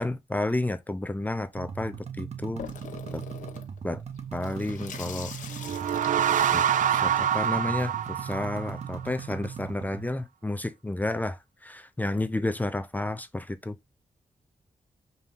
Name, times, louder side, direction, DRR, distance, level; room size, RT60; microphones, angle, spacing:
voice 1, 0.0-2.7 3.1-3.2 3.8-4.0 4.3-5.3 6.5-6.6 6.9-13.8, left 2 dB, 15° left, 0.7 m, -31 dB
sound 1, 1.6-10.1, right 7 dB, 55° right, 0.9 m, -39 dB
Water tap faucet / Sink (filling or washing), 2.6-7.8, left 8 dB, 85° left, 1.0 m, -44 dB
sound 2, 5.5-9.0, right 9 dB, 85° right, 0.5 m, -26 dB
5.5 x 3.6 x 5.7 m
cardioid pair, 90°, 13 cm